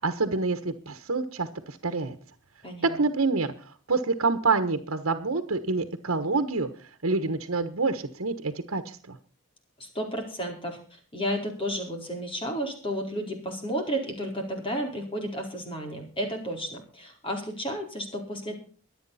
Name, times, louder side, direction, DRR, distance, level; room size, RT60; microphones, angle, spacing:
voice 1, 0.0-2.2 2.8-6.7 7.0-9.2, right 3 dB, 80° right, 8 dB, 1.3 m, -27 dB
voice 2, 2.6-2.9 9.8-18.6, equal, 25° left, 3 dB, 4.6 m, -32 dB
23.5 x 9.0 x 4.2 m, 0.41 s
head